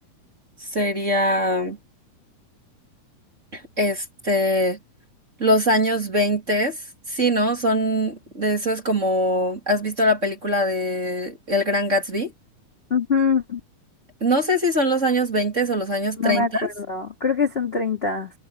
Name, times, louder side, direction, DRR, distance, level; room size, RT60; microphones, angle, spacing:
voice 1, 0.6-1.8 3.5-4.8 5.4-6.8 7.1-12.3 14.2-16.7, equal, 20° right, 2.9 m, -22 dB
voice 2, 12.9-13.6 16.2-18.3, left 5 dB, 20° left, 1.7 m, -23 dB
omnidirectional pair, 4.5 m